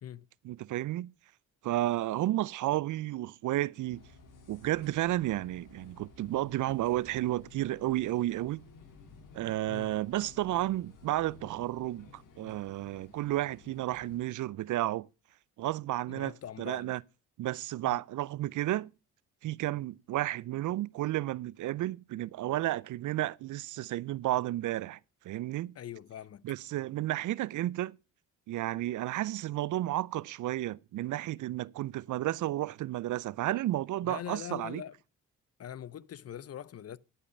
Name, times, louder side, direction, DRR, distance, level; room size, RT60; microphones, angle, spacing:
voice 1, 0.4-1.1 1.6-4.1 4.5-8.6 9.3-15.1 15.6-17.0 17.4-18.9 19.4-25.0 25.2-25.7 26.4-28.0 28.5-34.8, right 15 dB, 60° right, 0.5 m, -32 dB
sound 1, 3.9-14.2, left 4 dB, 60° left, 2.7 m, -55 dB
voice 2, 16.1-16.9 17.8-18.0 25.8-26.4 34.0-35.0 35.6-37.0, left 10 dB, 45° left, 0.6 m, -42 dB
12.0 x 5.6 x 6.3 m
supercardioid pair, 55°, 35 cm